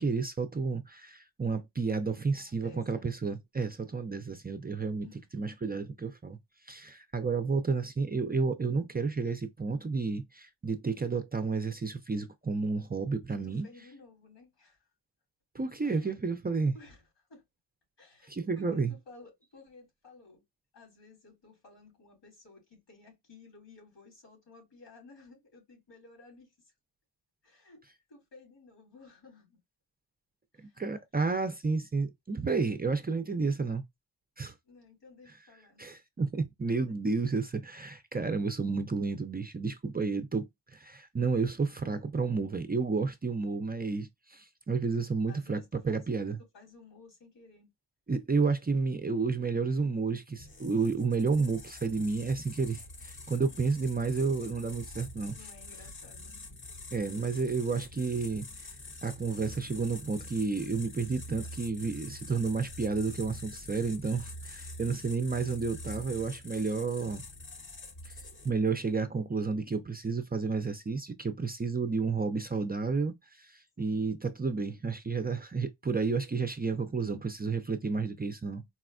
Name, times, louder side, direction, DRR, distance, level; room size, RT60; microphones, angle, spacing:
voice 1, 0.0-5.1 5.3-6.4 6.6-13.7 15.5-16.7 18.3-18.9 30.8-33.8 34.4-34.5 35.8-45.6 45.8-46.4 48.1-55.4 56.9-58.7 59.0-67.2 68.0-68.1 68.4-78.6, right 4 dB, 25° right, 0.4 m, -31 dB
voice 2, 2.3-3.1 5.0-5.6 13.3-14.9 15.8-16.2 16.7-17.4 18.0-20.4 20.7-26.7 27.4-29.6 30.5-30.8 34.6-35.9 36.9-37.0 38.2-38.4 45.3-46.3 46.5-47.7 53.5-53.9 55.3-56.5 64.8-65.3 73.8-74.1, left 3 dB, 80° left, 2.4 m, -56 dB
sound 1, 50.3-68.7, left 2 dB, 30° left, 0.7 m, -46 dB
4.1 x 2.1 x 2.4 m
cardioid pair, 90°, 43 cm